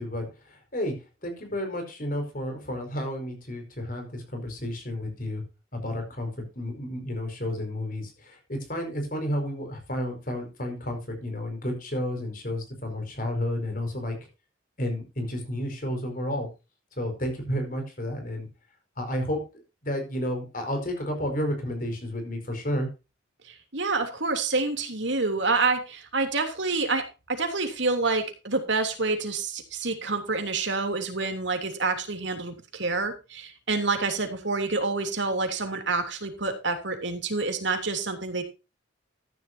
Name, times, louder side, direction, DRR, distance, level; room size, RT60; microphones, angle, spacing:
voice 1, 0.0-5.4 5.7-14.2 14.8-16.5 17.0-18.5 19.0-22.9, left 1 dB, 45° left, 5 dB, 5.1 m, -31 dB
voice 2, 23.5-38.4, right 3 dB, 70° right, 5 dB, 3.0 m, -28 dB
14.5 x 11.0 x 2.7 m, 0.28 s
head